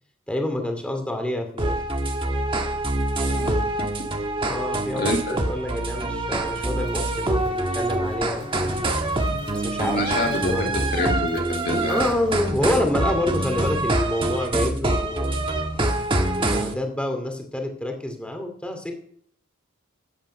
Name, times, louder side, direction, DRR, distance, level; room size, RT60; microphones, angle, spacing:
voice 1, 0.3-1.8 4.4-8.9 9.5-10.0 10.4-10.8 11.9-15.8 16.3-18.9, left 1 dB, 5° left, 4 dB, 2.3 m, -28 dB
sound 1, 1.6-16.7, right 2 dB, 25° right, 1.4 m, -25 dB
voice 2, 3.3-3.9 5.0-5.4 9.8-12.1, left 1 dB, 45° left, 2 dB, 2.1 m, -27 dB
sound 2, 6.5-12.5, left 2 dB, 75° left, 2.3 m, -44 dB
14.0 x 9.0 x 5.5 m, 0.63 s
head